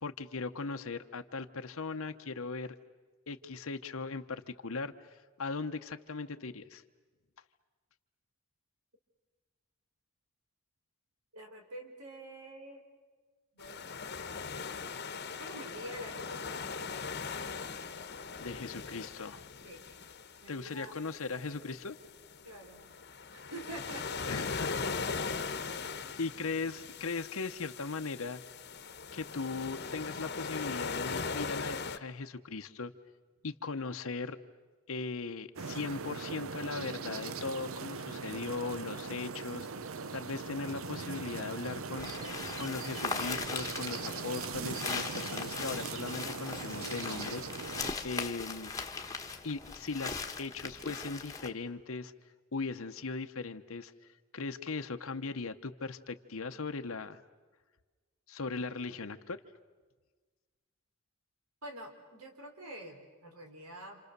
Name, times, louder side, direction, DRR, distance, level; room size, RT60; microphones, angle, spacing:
voice 1, 0.0-2.8 3.3-6.8 18.4-19.5 20.5-22.0 24.3-24.9 25.3-25.6 26.2-28.4 29.1-32.9 33.4-34.4 34.9-39.7 40.1-42.1 42.5-47.4 48.0-48.7 49.4-52.1 52.5-53.9 54.3-57.2 58.3-59.4, left 4 dB, 70° left, 7 dB, 0.9 m, -38 dB
voice 2, 11.3-12.9 13.5-14.0 15.4-17.3 19.6-20.0 20.4-20.9 22.4-22.9 23.3-24.3 61.6-64.0, right 1 dB, 85° right, 4 dB, 4.1 m, -47 dB
sound 1, 13.6-32.0, left 5 dB, 45° left, 1.1 m, -40 dB
sound 2, 35.6-47.9, right 5 dB, 70° right, 0.8 m, -40 dB
sound 3, 42.0-51.5, left 4 dB, 15° left, 1.2 m, -39 dB
28.5 x 27.5 x 6.8 m, 1.4 s
head